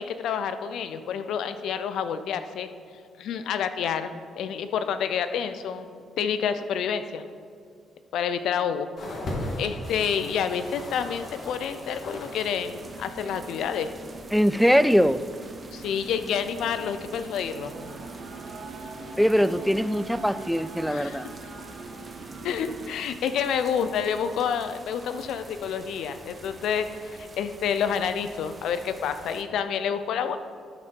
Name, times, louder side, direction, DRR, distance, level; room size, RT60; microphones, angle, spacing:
voice 1, 0.0-2.7 3.2-7.2 8.1-8.9 9.6-13.9 15.7-17.7 20.9-21.2 22.4-30.4, left 7 dB, 75° left, 10 dB, 0.5 m, -28 dB
sound 1, 9.0-12.4 12.7-13.6 14.3-14.4, left 1 dB, 50° left, 1.8 m, -37 dB
sound 2, 9.8-29.4, right 3 dB, 35° right, 1.1 m, -47 dB
sound 3, 12.6-22.9, right 3 dB, 85° right, 1.5 m, -42 dB
voice 2, 14.3-15.2 19.2-21.3, equal, ahead, 15 dB, 0.3 m, -21 dB
12.0 x 4.2 x 5.2 m, 2.3 s
supercardioid pair, 70°, 0 cm